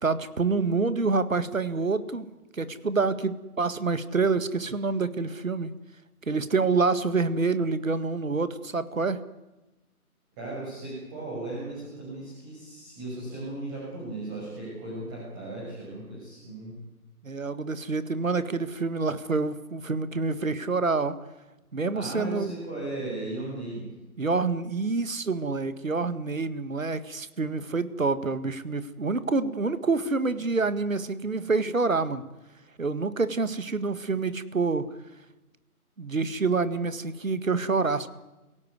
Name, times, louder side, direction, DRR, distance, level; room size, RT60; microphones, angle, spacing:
voice 1, 0.0-5.7 6.3-9.2 17.2-21.2 21.7-22.5 24.2-32.3 32.8-34.9 36.0-38.1, right 4 dB, 60° right, 13 dB, 1.9 m, -27 dB
voice 2, 10.4-16.8 21.9-23.9, right 2 dB, 15° right, -6 dB, 6.8 m, -36 dB
25.5 x 17.5 x 9.6 m, 1.1 s
figure-of-eight pair, 155°, 45 cm